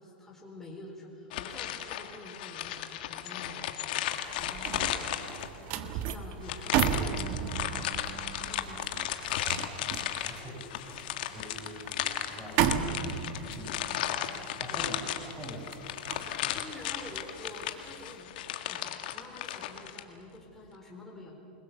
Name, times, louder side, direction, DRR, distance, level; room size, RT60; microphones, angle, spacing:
voice 1, 0.0-5.1 5.7-8.0 8.4-8.9 14.7-14.9 16.5-21.4, left 1 dB, 5° left, -2 dB, 4.3 m, -48 dB
sound 1, 1.3-5.7 6.4-20.0, left 12 dB, 65° left, 1.8 m, -35 dB
sound 2, 4.2-17.5 17.9-18.2, right 9 dB, 45° right, 1.6 m, -34 dB
voice 2, 10.3-14.1 14.4-15.8 16.2-16.3, right 1 dB, 15° right, 0 dB, 6.5 m, -45 dB
28.5 x 21.0 x 7.0 m, 2.9 s
hypercardioid pair, 120°, 5 cm